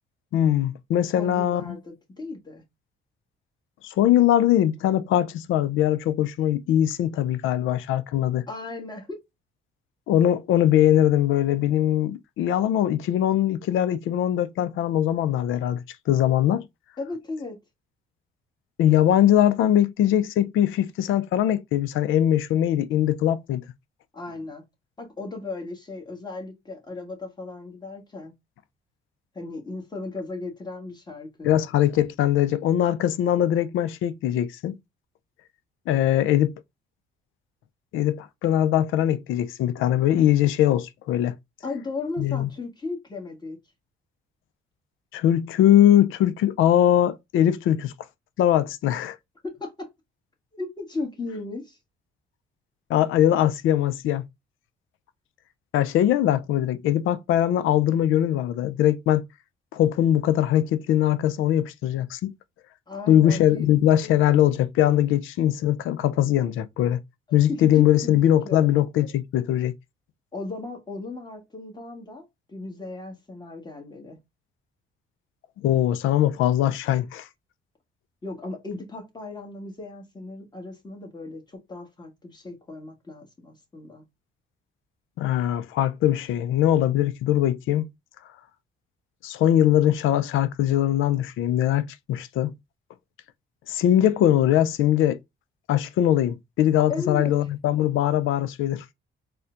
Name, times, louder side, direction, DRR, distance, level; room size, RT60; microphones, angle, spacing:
voice 1, 0.3-1.8 3.8-8.4 10.1-16.7 18.8-23.6 31.4-34.8 35.9-36.5 37.9-41.3 42.2-42.5 45.1-47.9 48.4-49.2 52.9-54.2 55.7-59.2 59.7-62.3 63.1-67.0 67.3-69.7 75.6-77.3 85.2-87.9 89.2-92.5 93.7-95.2 95.7-98.8, left 11 dB, 85° left, 0.5 m, -21 dB
voice 2, 1.1-2.6 8.5-9.2 17.0-17.6 24.1-24.6 25.0-28.3 29.3-31.5 41.6-43.6 49.6-49.9 50.5-51.8 62.9-63.7 67.3-67.6 68.0-68.7 70.3-74.2 78.2-84.0 96.9-97.3, left 3 dB, 20° left, 1.5 m, -36 dB
4.2 x 2.2 x 2.5 m
cardioid pair, 90°, 20 cm